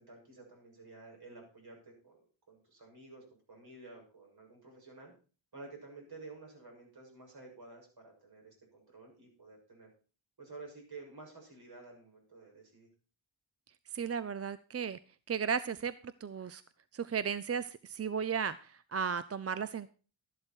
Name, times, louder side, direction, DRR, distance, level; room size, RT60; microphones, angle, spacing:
voice 1, 0.0-5.1 5.5-9.9 10.4-12.9, right 3 dB, 55° right, 0 dB, 7.1 m, -52 dB
voice 2, 13.9-15.0 15.3-15.9 16.2-16.6 16.9-19.9, right 6 dB, 30° right, 15 dB, 0.5 m, -35 dB
13.0 x 11.0 x 4.5 m, 0.37 s
wide cardioid pair, 120°, 47 cm